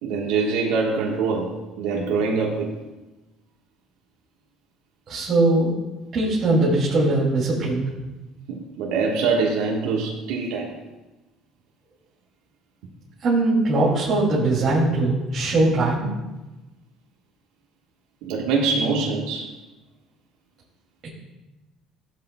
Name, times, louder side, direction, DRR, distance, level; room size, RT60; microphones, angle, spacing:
voice 1, 0.0-1.5 1.8-2.7 8.5-10.7 18.2-19.5, right 4 dB, 85° right, -2 dB, 1.4 m, -24 dB
voice 2, 5.1-5.7 6.1-7.8 13.2-16.1 21.0-21.1, right 2 dB, 45° right, -7 dB, 2.7 m, -20 dB
15.5 x 8.4 x 2.3 m, 1.1 s
cardioid pair, 105°, 0 cm